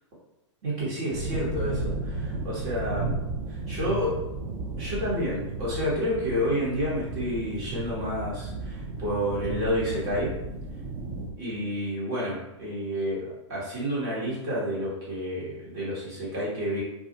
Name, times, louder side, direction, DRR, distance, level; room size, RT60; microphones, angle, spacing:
voice 1, 0.6-3.1 3.5-4.1 4.8-10.3 11.4-16.8, equal, 45° right, -7 dB, 1.1 m, -30 dB
sound 1, 1.1-11.3, right 3 dB, 30° right, 0.4 m, -34 dB
2.3 x 2.0 x 2.8 m, 0.95 s
hypercardioid pair, 115°, 16 cm